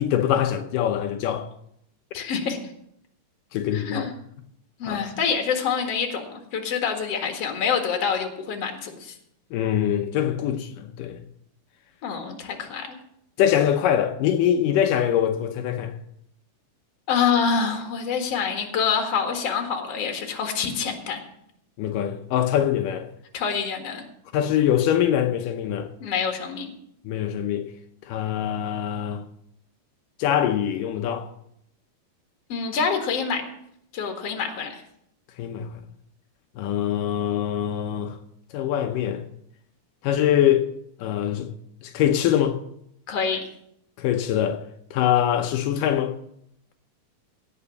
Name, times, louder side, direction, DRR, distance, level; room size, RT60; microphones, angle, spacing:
voice 1, 0.0-1.5 3.5-4.1 4.9-5.0 9.5-11.2 13.4-15.9 21.8-23.1 24.3-25.9 27.0-27.7 28.0-29.2 30.2-31.3 35.4-35.7 36.6-38.2 38.5-39.2 40.0-40.7 41.0-41.5 41.8-42.6 44.0-44.6 44.9-46.1, left 10 dB, 85° left, 2.5 m, -23 dB
voice 2, 2.1-2.6 3.7-4.1 4.8-9.1 12.0-13.0 17.1-21.2 23.3-24.0 26.0-26.7 32.5-33.5 33.9-34.8 43.1-43.4, left 6 dB, 55° left, 2.7 m, -26 dB
17.0 x 6.1 x 7.0 m
omnidirectional pair, 3.7 m